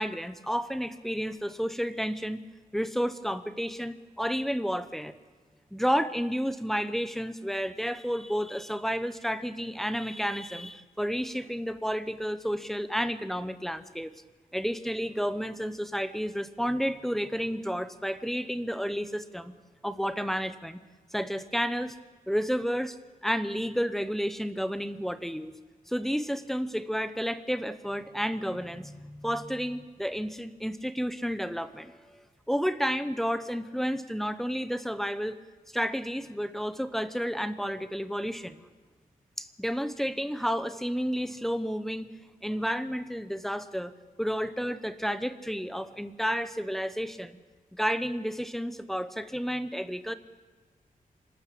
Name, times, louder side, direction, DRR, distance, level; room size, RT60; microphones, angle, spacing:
voice 1, 0.0-2.5 2.7-5.2 5.7-14.1 14.5-19.5 19.8-20.8 21.1-22.0 22.3-23.0 23.2-25.5 25.9-35.4 35.7-38.7 39.4-42.1 42.4-43.9 44.2-47.4 47.7-50.1, equal, ahead, 12 dB, 0.8 m, -31 dB
27.0 x 13.0 x 8.4 m, 1.4 s
wide cardioid pair, 165°, 15 cm